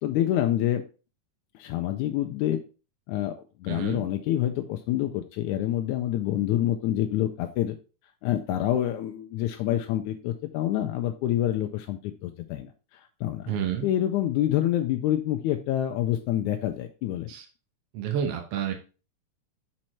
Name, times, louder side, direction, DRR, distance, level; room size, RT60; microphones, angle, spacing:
voice 1, 0.0-0.8 1.6-2.6 3.1-3.3 3.6-7.8 8.2-13.5 13.8-17.3, left 12 dB, 80° left, 5 dB, 1.9 m, -27 dB
voice 2, 3.7-4.0 13.5-13.9 17.3-17.5 17.9-18.7, right 8 dB, 65° right, 3 dB, 1.6 m, -29 dB
6.3 x 4.5 x 4.3 m, 0.34 s
omnidirectional pair, 3.6 m